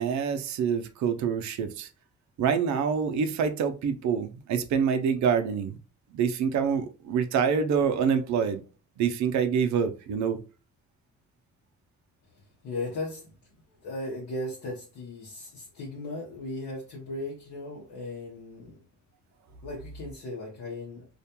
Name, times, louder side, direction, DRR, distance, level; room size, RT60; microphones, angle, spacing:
voice 1, 0.0-1.9 2.4-5.8 6.1-8.6 9.0-10.4, right 6 dB, 70° right, 0.5 m, -26 dB
voice 2, 12.6-13.3 13.8-18.9 19.6-21.1, left 2 dB, 70° left, 0.9 m, -37 dB
2.4 x 2.2 x 2.8 m
cardioid pair, 90°, 30 cm